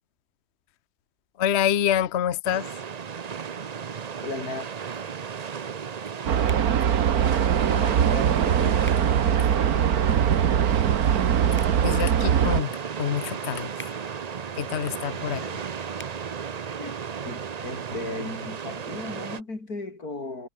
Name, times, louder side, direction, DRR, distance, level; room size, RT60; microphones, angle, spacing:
voice 1, 1.4-2.7 11.8-14.0 14.6-15.4, left 10 dB, 50° left, 1.0 m, -27 dB
sound 1, 2.4-19.4, right 7 dB, 45° right, 0.5 m, -35 dB
voice 2, 4.2-4.7 7.7-8.7 15.3-15.7 16.8-20.5, left 3 dB, 75° left, 5.3 m, -36 dB
sound 2, 6.3-12.6, right 9 dB, 75° right, 1.6 m, -21 dB
sound 3, 6.5-6.7 8.8-9.0 11.5-11.8 13.7-14.0 15.9-16.1, equal, 5° left, 4.2 m, -43 dB
omnidirectional pair, 1.6 m